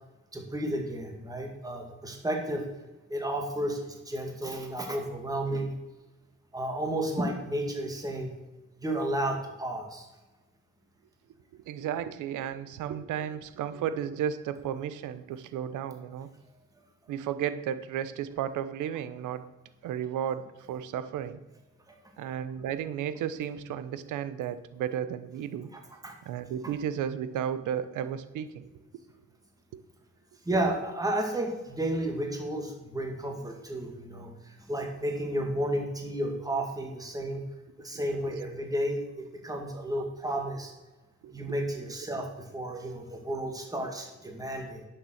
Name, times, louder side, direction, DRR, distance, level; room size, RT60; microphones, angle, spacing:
voice 1, 0.3-2.6 3.1-5.8 6.5-8.3 8.8-10.1 21.9-22.0 26.0-26.1 30.5-37.4 37.8-40.7 41.3-44.9, right 1 dB, 10° right, 2 dB, 2.1 m, -32 dB
voice 2, 11.5-16.3 17.1-19.5 19.8-21.4 22.2-25.7 26.2-28.7 38.3-38.4 40.0-40.1 41.2-41.5, right 9 dB, 85° right, 13 dB, 0.9 m, -33 dB
10.0 x 7.1 x 6.5 m, 1.1 s
cardioid pair, 90°, 30 cm